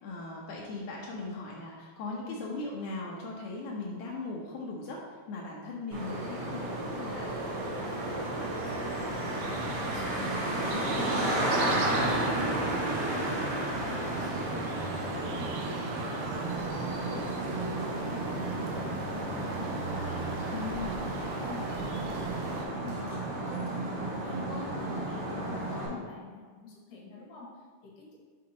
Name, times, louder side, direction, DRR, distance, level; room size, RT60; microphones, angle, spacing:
voice 1, 0.0-7.3 19.9-20.7 24.9-25.1 25.9-26.1, left 3 dB, 85° left, -3 dB, 1.7 m, -39 dB
Traffic noise roadway noise, 5.9-25.9, right 1 dB, 60° right, 1.5 m, -33 dB
sound 1, 6.0-22.6, right 3 dB, 85° right, 2.6 m, -38 dB
voice 2, 7.9-12.5 12.9-15.6 16.0-19.0 19.4-20.1 20.5-23.9 24.2-28.2, left 3 dB, 65° left, -4 dB, 2.7 m, -46 dB
6.4 x 3.7 x 4.2 m, 1.5 s
omnidirectional pair, 4.3 m